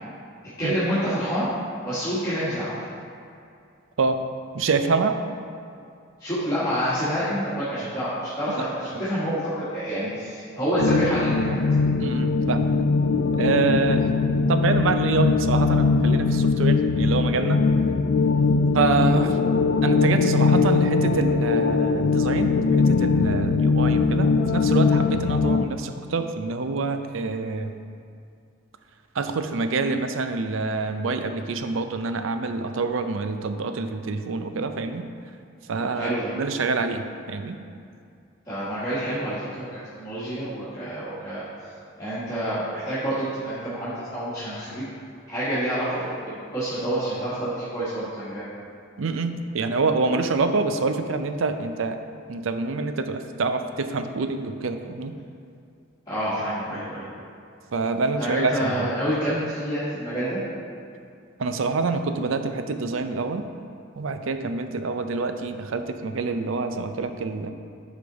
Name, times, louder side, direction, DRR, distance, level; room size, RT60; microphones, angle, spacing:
voice 1, 0.6-1.5 1.8-2.7 6.2-11.6 35.9-36.3 38.4-41.5 42.0-44.8 45.3-48.5 56.1-57.0 58.2-60.4, equal, 20° left, -14 dB, 1.6 m, -27 dB
voice 2, 4.5-5.2 8.6-8.7 8.9-9.1 12.0-12.7 13.4-14.1 14.5-17.6 18.7-19.4 19.8-22.6 22.9-27.7 29.1-35.1 35.7-37.6 49.0-52.0 52.3-55.1 57.7-58.9 61.4-63.5 64.0-67.5, right 4 dB, 75° right, 8 dB, 0.5 m, -26 dB
sound 1, 10.8-25.7, left 4 dB, 65° left, 0.3 m, -21 dB
8.3 x 5.1 x 4.0 m, 2.4 s
head